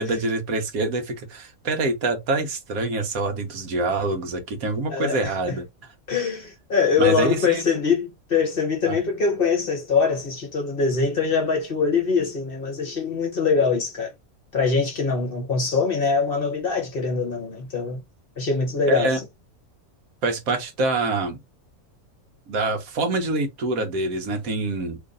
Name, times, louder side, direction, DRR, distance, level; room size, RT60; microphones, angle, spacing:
voice 1, 0.0-5.6 7.0-7.6 8.9-9.0 18.9-19.2 20.2-21.4 22.5-25.0, right 2 dB, 75° right, 1.3 m, -25 dB
voice 2, 4.9-5.6 6.1-14.1 14.5-18.0 18.4-19.2, left 5 dB, 45° left, 1.0 m, -23 dB
3.0 x 2.5 x 3.7 m
omnidirectional pair, 1.5 m